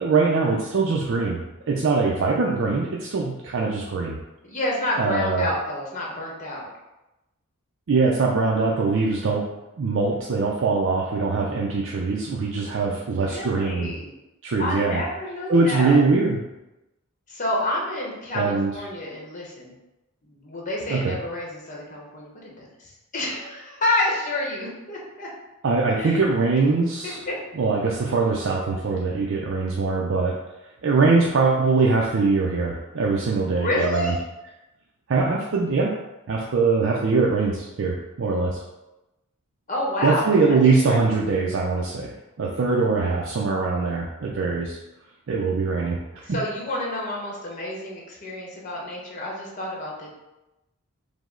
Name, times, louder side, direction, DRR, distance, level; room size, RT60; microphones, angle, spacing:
voice 1, 0.0-1.4 1.7-4.2 5.0-5.5 7.9-9.5 9.8-13.9 14.4-15.0 15.5-16.4 18.3-18.7 20.9-21.2 25.6-27.2 27.6-30.4 30.8-34.1 35.1-35.9 36.3-38.6 40.0-44.8 45.3-46.4, right 4 dB, 60° right, -2 dB, 0.4 m, -22 dB
voice 2, 4.4-6.7 13.2-14.1 14.6-16.0 17.3-19.7 20.2-25.3 26.0-26.2 27.0-27.3 33.5-34.2 39.7-40.3 40.6-41.0 46.3-50.1, left 1 dB, 35° left, -3 dB, 0.8 m, -29 dB
5.0 x 2.0 x 3.7 m, 0.98 s
head